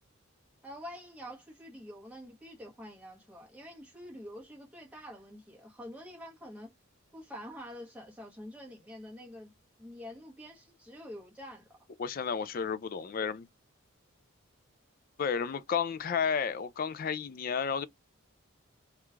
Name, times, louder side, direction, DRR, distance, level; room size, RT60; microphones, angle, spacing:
voice 1, 0.6-6.7 7.1-9.5 9.8-11.7, equal, 5° right, 1.1 m, -47 dB
voice 2, 12.0-13.5 15.2-17.8, left 6 dB, 45° left, 0.3 m, -32 dB
3.1 x 2.4 x 3.3 m
head